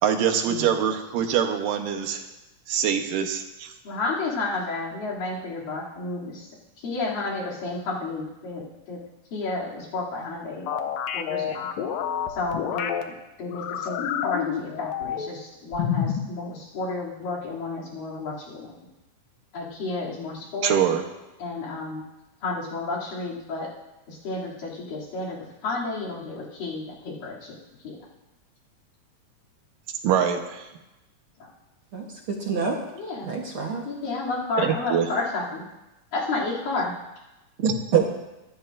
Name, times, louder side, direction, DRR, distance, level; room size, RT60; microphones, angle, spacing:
voice 1, 0.0-2.2 2.7-3.7 20.6-21.0 30.0-30.7 34.6-35.1 37.6-38.1, right 8 dB, 80° right, 5 dB, 2.7 m, -24 dB
voice 2, 3.8-6.5 6.8-9.0 9.3-10.6 11.1-11.7 12.3-12.9 13.4-18.7 19.5-20.7 21.4-22.0 22.4-23.7 24.1-25.4 25.6-27.6 27.8-28.0 33.0-33.3 33.9-35.6 36.1-36.9, left 3 dB, 85° left, -5 dB, 4.6 m, -31 dB
sound 1, 10.7-13.0 13.5-15.4 15.7-16.3, left 8 dB, 70° left, 1.8 m, -28 dB
voice 3, 31.9-32.8 33.2-33.9 37.6-38.1, right 3 dB, 55° right, 0 dB, 1.5 m, -29 dB
24.0 x 12.0 x 2.6 m, 1.0 s
omnidirectional pair, 3.8 m